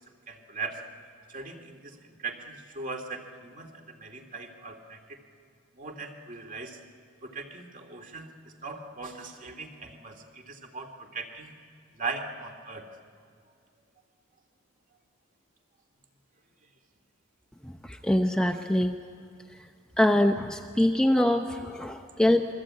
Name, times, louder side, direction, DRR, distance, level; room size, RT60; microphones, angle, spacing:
voice 1, 0.3-0.8 1.3-5.2 5.7-6.8 7.2-11.5 11.9-12.9 21.9-22.0, right 4 dB, 40° right, 4 dB, 2.3 m, -39 dB
voice 2, 17.9-18.9 20.0-22.5, left 1 dB, 5° left, 4 dB, 0.7 m, -24 dB
26.5 x 23.0 x 8.7 m, 2.2 s
head